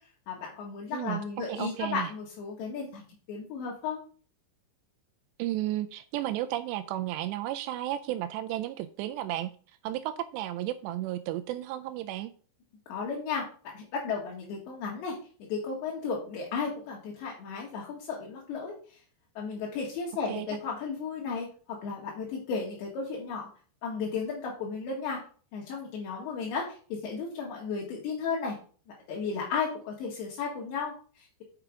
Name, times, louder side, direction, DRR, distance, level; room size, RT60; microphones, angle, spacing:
voice 1, 0.3-4.0 12.9-15.2 15.5-19.0 19.4-23.5 23.8-25.2 25.5-28.6 29.1-31.4, left 5 dB, 70° left, -2 dB, 3.5 m, -34 dB
voice 2, 1.5-2.1 5.4-9.5 9.8-12.3 20.3-20.5, right 14 dB, 90° right, 10 dB, 2.4 m, -33 dB
6.8 x 5.9 x 4.9 m, 0.41 s
omnidirectional pair, 5.5 m